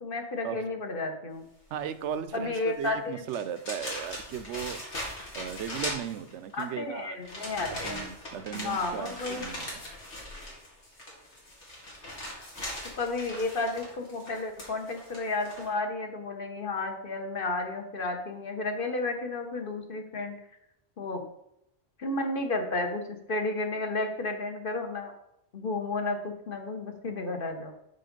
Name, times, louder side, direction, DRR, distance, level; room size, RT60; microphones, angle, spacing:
voice 1, 0.0-1.4 2.3-3.2 6.5-8.1 8.5-9.5 12.9-20.3 21.0-21.2 22.0-23.0 23.3-25.1 25.5-27.7, left 2 dB, 55° left, 4 dB, 1.2 m, -32 dB
voice 2, 1.7-4.8 5.3-7.2 7.7-9.8, right 9 dB, 90° right, 12 dB, 0.9 m, -36 dB
sound 1, 2.7-2.9 3.3-6.6 7.2-15.7, left 1 dB, 90° left, 2.5 m, -40 dB
6.3 x 5.6 x 5.2 m, 0.82 s
omnidirectional pair, 1.2 m